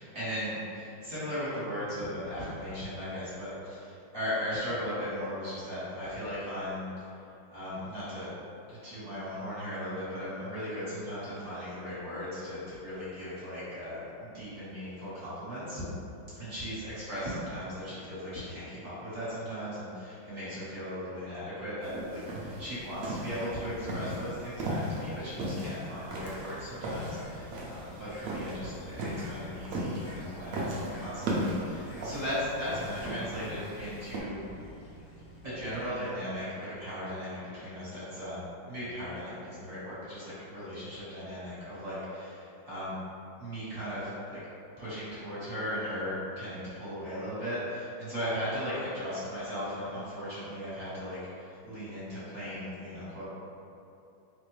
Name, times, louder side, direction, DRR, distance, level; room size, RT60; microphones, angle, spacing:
voice 1, 0.0-6.9 7.5-8.3 8.7-15.8 16.4-34.4 35.4-42.9 43.4-44.4 44.8-53.2, equal, 30° right, -13 dB, 1.3 m, -37 dB
sound 1, 21.8-34.2, right 1 dB, 80° right, 0.7 m, -37 dB
Bird, 26.1-35.9, left 1 dB, 75° left, 1.4 m, -51 dB
4.1 x 2.6 x 3.1 m, 2.7 s
omnidirectional pair, 2.2 m